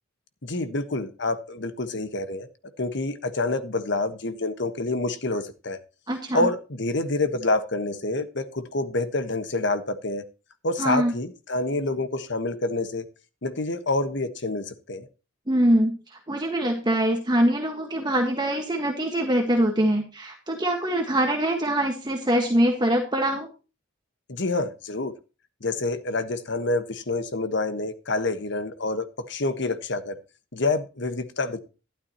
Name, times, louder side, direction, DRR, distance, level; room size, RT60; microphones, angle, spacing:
voice 1, 0.4-2.5 2.8-5.8 6.3-10.2 10.6-13.0 13.4-15.0 24.3-25.1 25.6-30.2 30.5-31.6, left 2 dB, 60° left, 9 dB, 1.4 m, -27 dB
voice 2, 6.1-6.5 10.8-11.1 15.5-16.0 16.3-23.5, right 1 dB, 20° right, 3 dB, 1.6 m, -23 dB
12.5 x 12.0 x 3.0 m, 0.32 s
head